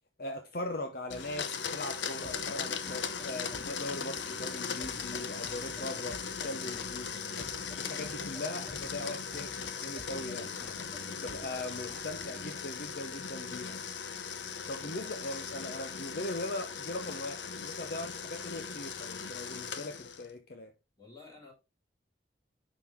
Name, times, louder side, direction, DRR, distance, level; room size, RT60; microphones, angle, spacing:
voice 1, 0.2-7.1 7.8-10.8 11.2-13.9 14.7-20.7, left 1 dB, 55° left, 0.8 m, -40 dB
Domestic sounds home sounds, 1.1-20.3, left 6 dB, 85° left, 0.8 m, -39 dB
sound 1, 2.2-12.5, equal, 5° left, 2.1 m, -51 dB
voice 2, 21.0-21.5, left 4 dB, 20° left, 4.1 m, -54 dB
10.5 x 4.0 x 3.5 m
head